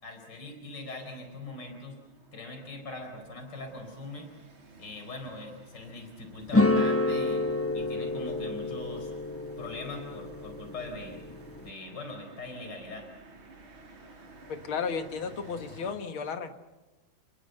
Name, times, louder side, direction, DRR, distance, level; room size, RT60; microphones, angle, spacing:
voice 1, 0.0-2.0 2.3-4.3 4.8-7.5 7.7-9.1 9.6-11.2 11.6-13.1, left 2 dB, 55° left, 5 dB, 5.1 m, -41 dB
sound 1, 1.1-16.0, right 2 dB, 85° right, 5.2 m, -53 dB
sound 2, 6.5-11.7, left 2 dB, 20° left, 0.3 m, -29 dB
voice 2, 14.5-16.6, left 6 dB, 85° left, 7 dB, 2.4 m, -34 dB
29.5 x 21.0 x 7.9 m, 1.1 s
omnidirectional pair, 2.2 m